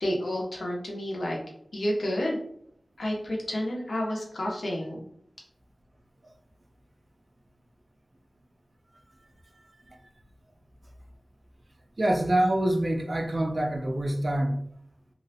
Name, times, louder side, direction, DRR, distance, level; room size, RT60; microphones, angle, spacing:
voice 1, 0.0-1.4 1.7-2.4 3.0-5.0, left 1 dB, 80° left, 0.6 m, -30 dB
voice 2, 12.0-14.6, right 1 dB, 50° right, 0.4 m, -25 dB
2.4 x 2.0 x 2.7 m
wide cardioid pair, 80°, 0 cm